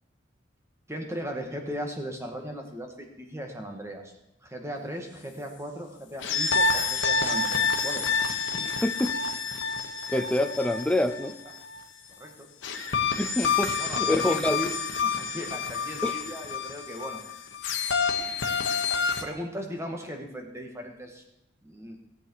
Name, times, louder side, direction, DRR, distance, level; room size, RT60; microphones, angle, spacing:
voice 1, 0.9-4.1 4.4-8.2 12.2-12.5 13.8-14.7 15.0-17.2 19.2-21.2 21.6-22.0, equal, 15° right, 3 dB, 1.8 m, -37 dB
sound 1, 6.2-11.8 12.6-19.2, left 5 dB, 75° left, 1.3 m, -28 dB
voice 2, 8.5-9.1 10.1-11.3 13.2-14.6 16.0-16.2, left 1 dB, 5° left, 8 dB, 0.6 m, -27 dB
17.0 x 8.0 x 4.7 m, 0.84 s
head